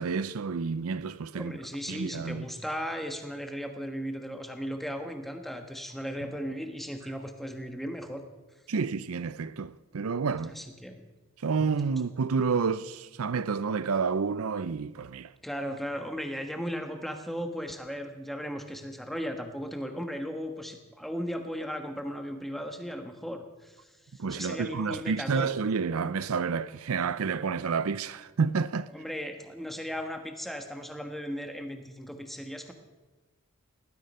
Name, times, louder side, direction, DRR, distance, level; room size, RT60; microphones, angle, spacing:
voice 1, 0.0-1.5 1.9-2.4 8.7-10.6 11.4-15.3 24.2-28.9, right 5 dB, 80° right, 0.5 m, -29 dB
voice 2, 1.3-8.3 10.4-11.0 15.4-23.9 24.3-25.5 28.9-32.7, equal, ahead, 1.3 m, -36 dB
Drum, 6.2-8.0 11.6-13.6, equal, 45° right, 2.4 m, -51 dB
19.0 x 12.5 x 5.5 m
head